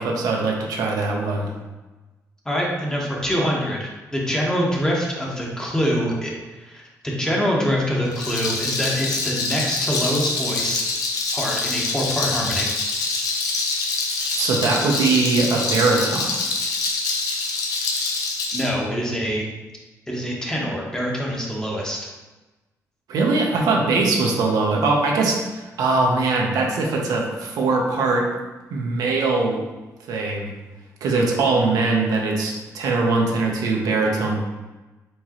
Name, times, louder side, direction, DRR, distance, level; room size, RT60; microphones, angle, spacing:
voice 1, 0.0-1.5 14.3-16.3 23.1-28.3 28.7-29.6 30.1-30.5 31.0-34.4, right 3 dB, 85° right, 0 dB, 0.8 m, -21 dB
voice 2, 2.4-10.8 11.3-12.7 18.5-19.5 20.1-22.0, equal, 10° left, -3 dB, 1.0 m, -25 dB
Rattle, 8.1-18.7, left 3 dB, 80° left, 0.7 m, -25 dB
4.5 x 3.7 x 3.0 m, 1.2 s
cardioid pair, 100°, 6 cm